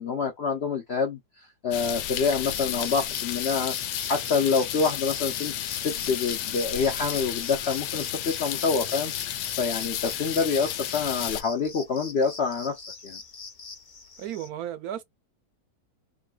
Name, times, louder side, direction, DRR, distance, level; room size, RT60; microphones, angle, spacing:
voice 1, 0.0-13.2, left 5 dB, 60° left, 0.7 m, -27 dB
sound 1, 1.7-11.4, left 11 dB, 90° left, 1.2 m, -32 dB
sound 2, 2.3-14.5, left 4 dB, 40° left, 1.0 m, -43 dB
voice 2, 14.2-15.0, right 11 dB, 70° right, 1.0 m, -34 dB
3.8 x 2.1 x 2.3 m
omnidirectional pair, 1.8 m